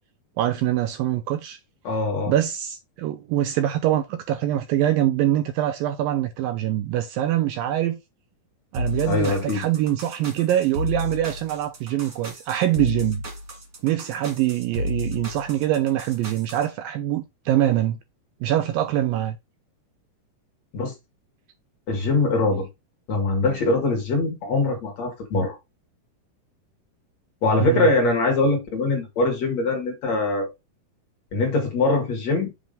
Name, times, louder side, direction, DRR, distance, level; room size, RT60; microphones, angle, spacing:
voice 1, 0.4-1.6 2.3-8.0 8.7-13.2 13.8-18.0 18.4-19.4 27.6-27.9, right 12 dB, 85° right, 2.1 m, -24 dB
voice 2, 1.8-2.3 9.1-9.6 20.7-20.9 21.9-22.7 23.1-25.6 27.4-30.5 31.3-32.5, left 2 dB, 50° left, 2.6 m, -22 dB
sound 1, 8.7-16.6, left 1 dB, 45° right, 1.3 m, -32 dB
7.6 x 3.3 x 5.2 m
omnidirectional pair, 4.6 m